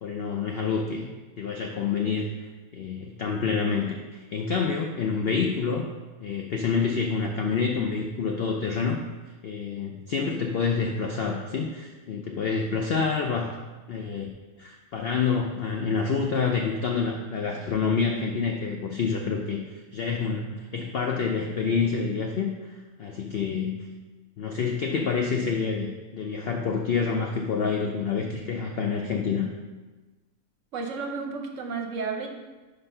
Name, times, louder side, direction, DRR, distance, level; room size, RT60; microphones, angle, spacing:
voice 1, 0.0-1.1 1.4-2.3 2.7-5.9 6.2-9.0 9.4-13.6 13.9-14.3 14.6-23.7 24.4-25.9 26.1-29.5, left 5 dB, 75° left, 2 dB, 0.5 m, -27 dB
voice 2, 30.7-32.3, right 4 dB, 65° right, 3 dB, 0.9 m, -32 dB
5.2 x 4.0 x 5.5 m, 1.2 s
omnidirectional pair, 1.6 m